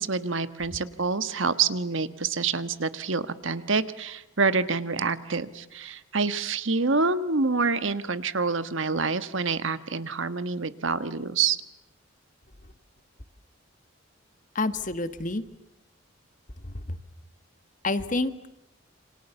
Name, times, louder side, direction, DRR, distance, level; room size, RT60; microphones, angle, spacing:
voice 1, 0.0-11.6, right 4 dB, 65° right, 12 dB, 1.4 m, -27 dB
voice 2, 14.5-15.4 16.6-17.0 17.8-18.5, left 2 dB, 40° left, 11 dB, 1.4 m, -29 dB
28.5 x 26.5 x 7.0 m, 0.87 s
head